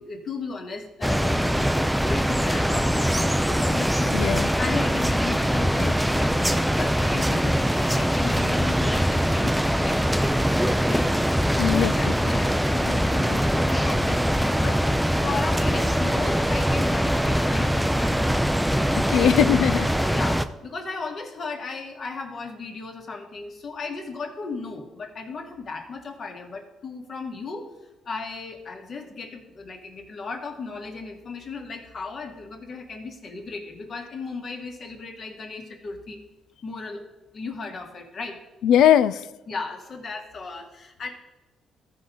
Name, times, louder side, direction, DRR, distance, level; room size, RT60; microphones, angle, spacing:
voice 1, 0.0-10.5 10.8-11.1 11.6-14.8 15.2-18.2 19.1-19.3 20.0-27.7 28.1-36.2 36.6-37.0 37.3-38.4 39.5-41.1, left 4 dB, 50° left, 2 dB, 1.8 m, -35 dB
sound 1, 1.0-20.5, equal, ahead, 0.5 m, -22 dB
voice 2, 4.1-4.5 11.6-12.4 19.0-19.9 38.6-39.1, left 10 dB, 80° left, 16 dB, 0.4 m, -20 dB
15.0 x 5.0 x 3.9 m, 1.1 s
cardioid pair, 90°, 0 cm